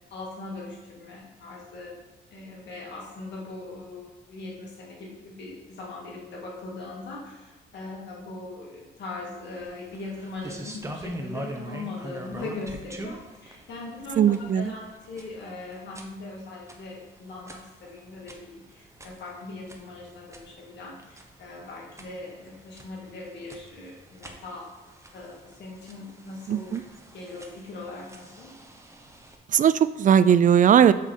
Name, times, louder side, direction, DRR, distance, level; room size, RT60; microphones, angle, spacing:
voice 1, 0.1-1.9 2.3-24.7 25.1-26.8 27.1-28.6, left 2 dB, 60° left, -3 dB, 2.2 m, -40 dB
sound 1, 9.5-29.4, right 1 dB, 15° right, 1.0 m, -44 dB
voice 2, 14.2-14.7 26.5-26.8 29.5-30.9, right 8 dB, 40° right, 14 dB, 0.4 m, -18 dB
7.5 x 3.4 x 5.5 m, 1.2 s
cardioid pair, 90°, 20 cm